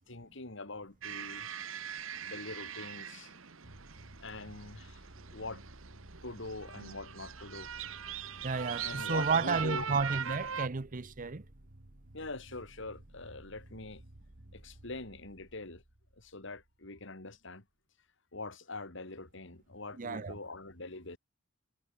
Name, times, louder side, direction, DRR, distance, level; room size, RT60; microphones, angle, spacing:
voice 1, 0.0-1.5 2.2-3.4 4.2-5.0 5.3-5.6 6.2-7.7 8.8-9.9 12.1-14.0 14.5-15.8 16.2-17.6 18.3-21.2, left 2 dB, 65° left, 3.2 m, -44 dB
sound 1, 1.0-10.7, right 7 dB, 80° right, 1.8 m, -41 dB
sound 2, 3.6-17.1, right 1 dB, 60° right, 2.0 m, -55 dB
voice 2, 8.4-11.4 20.0-20.4, right 4 dB, 40° right, 0.7 m, -32 dB
head